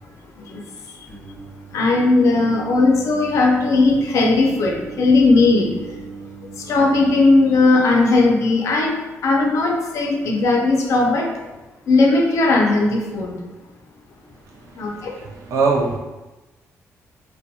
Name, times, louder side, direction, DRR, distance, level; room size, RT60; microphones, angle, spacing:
Singing, 1.1-7.6, right 4 dB, 20° left, 0.9 m, -38 dB
voice 1, 1.7-5.7 6.7-8.9 9.2-11.3 11.9-13.4 14.8-15.1, left 3 dB, 65° left, 1 dB, 0.4 m, -17 dB
voice 2, 15.1-16.0, right 4 dB, 75° right, 1 dB, 0.4 m, -21 dB
2.2 x 2.2 x 2.7 m, 1.1 s
cardioid pair, 120°, 6 cm